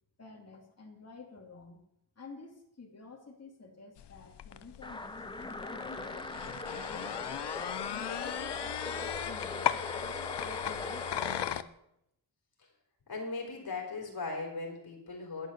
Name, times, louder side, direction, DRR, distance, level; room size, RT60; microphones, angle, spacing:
voice 1, 0.2-1.8 2.2-7.4 7.9-11.7, left 4 dB, 35° left, 1 dB, 2.6 m, -51 dB
sound 1, 4.0-11.6, left 10 dB, 80° left, 0.7 m, -37 dB
sound 2, 4.8-11.6, left 2 dB, 10° left, 0.8 m, -40 dB
voice 2, 13.1-15.5, left 3 dB, 60° left, 1 dB, 3.8 m, -38 dB
11.0 x 10.5 x 6.6 m, 0.77 s
wide cardioid pair, 145°, 41 cm